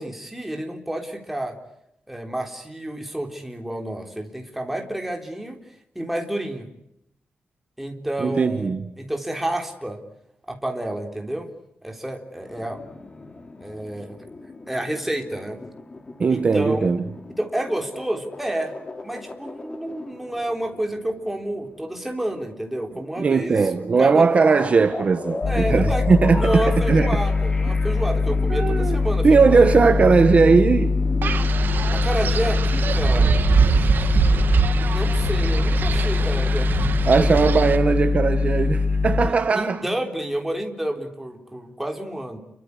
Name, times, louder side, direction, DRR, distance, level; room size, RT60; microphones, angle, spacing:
voice 1, 0.0-1.6 2.1-5.6 6.0-6.7 7.8-10.0 10.5-11.5 11.8-12.8 13.6-14.2 14.7-15.6 16.3-16.9 17.4-18.7 19.0-24.3 25.5-26.1 26.3-29.6 31.9-33.4 34.7-37.5 39.2-42.4, right 1 dB, 5° right, 3.8 m, -29 dB
voice 2, 8.2-8.9 16.2-17.0 23.2-27.2 28.5-29.0 29.2-30.9 37.1-39.8, right 4 dB, 35° right, 1.3 m, -18 dB
sound 1, 12.4-22.6 22.9-23.0 23.9-31.5, left 3 dB, 25° left, 2.6 m, -38 dB
sound 2, 25.4-39.3, left 4 dB, 55° left, 1.5 m, -22 dB
Wind, 31.2-37.8, right 6 dB, 60° right, 1.8 m, -24 dB
30.0 x 23.5 x 8.2 m
wide cardioid pair, 165°, 4 cm